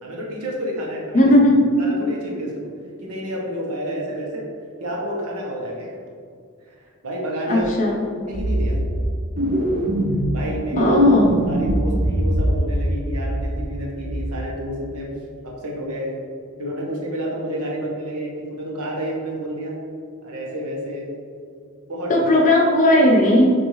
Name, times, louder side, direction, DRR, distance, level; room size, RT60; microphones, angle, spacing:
voice 1, 0.0-1.2 1.8-2.5 3.0-4.5 4.8-6.0 6.7-7.7 8.3-8.8 10.3-11.0 11.5-15.1 15.4-16.1 16.6-19.8 20.2-21.1 21.9-22.3, equal, 85° right, -2 dB, 1.0 m, -29 dB
voice 2, 1.1-1.6 7.5-8.0 10.8-11.3 22.1-23.5, left 1 dB, 35° left, -2 dB, 0.7 m, -16 dB
sound 1, 7.6-7.7 8.3-9.1 9.4-10.4 10.7-12.7 13.0-13.7 14.0-14.3, right 1 dB, 35° right, 0.5 m, -21 dB
6.3 x 2.6 x 3.1 m, 2.2 s
head